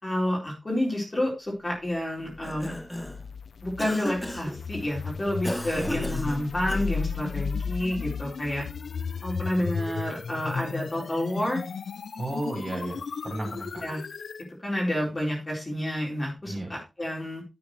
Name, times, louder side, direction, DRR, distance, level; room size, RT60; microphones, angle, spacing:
voice 1, 0.0-2.7 3.6-8.7 9.2-11.6 13.8-14.0 14.6-17.4, left 1 dB, 25° left, -2 dB, 4.2 m, -29 dB
Cough, 2.2-3.3 3.8-4.6 5.4-7.1, equal, 5° left, 1.0 m, -35 dB
sound 1, 2.3-14.5, left 5 dB, 90° left, 0.6 m, -34 dB
voice 2, 12.2-13.8 16.4-16.7, right 1 dB, 30° right, 0 dB, 5.1 m, -33 dB
10.5 x 8.5 x 3.2 m, 0.26 s
wide cardioid pair, 120°, 0 cm